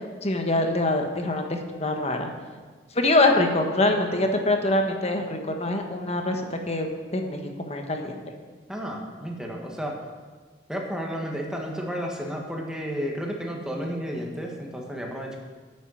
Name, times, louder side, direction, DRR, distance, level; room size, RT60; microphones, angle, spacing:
voice 1, 0.2-2.3 2.9-8.2, left 2 dB, 35° left, 4 dB, 1.3 m, -24 dB
voice 2, 8.7-9.9 10.7-15.4, equal, 5° right, 0 dB, 1.7 m, -32 dB
9.3 x 9.1 x 6.5 m, 1.5 s
head